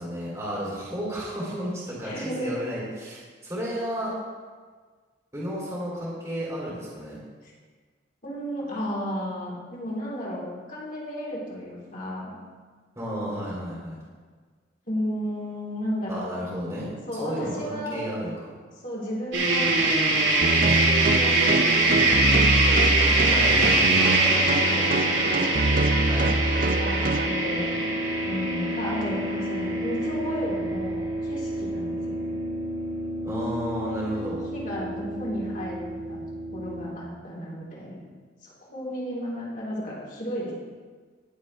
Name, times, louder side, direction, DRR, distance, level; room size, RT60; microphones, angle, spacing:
voice 1, 0.0-4.1 5.3-7.2 13.0-14.0 16.1-16.9 17.2-18.5 23.3-24.1 26.1-26.4 33.2-34.4, equal, 20° right, -7 dB, 2.7 m, -32 dB
voice 2, 2.0-2.6 7.4-7.5 8.2-12.3 14.8-16.3 17.1-18.0 18.8-19.8 21.1-22.4 23.6-23.8 24.1-25.5 26.7-27.8 28.3-32.3 34.0-36.2 36.5-38.0 38.4-40.5, equal, 45° left, -5 dB, 3.2 m, -33 dB
sound 1, 19.3-36.9, right 2 dB, 85° right, 3.0 m, -24 dB
sound 2, 20.4-27.3, right 2 dB, 45° right, 0.5 m, -25 dB
19.0 x 7.2 x 3.2 m, 1.5 s
head